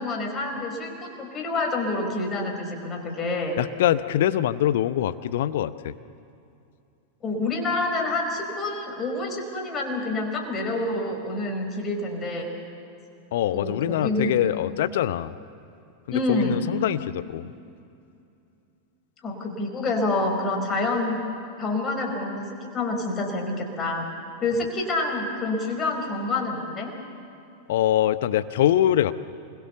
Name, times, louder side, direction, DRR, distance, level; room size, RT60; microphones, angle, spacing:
voice 1, 0.0-3.6 7.2-12.5 13.5-14.4 16.1-16.6 19.2-21.2 21.6-24.1 24.4-26.9, left 2 dB, 25° left, 2 dB, 4.5 m, -27 dB
voice 2, 3.6-5.9 13.3-15.3 16.1-17.5 27.7-29.1, left 12 dB, 55° left, 13 dB, 0.7 m, -23 dB
26.0 x 21.5 x 7.0 m, 2.6 s
figure-of-eight pair, 90°, 0 cm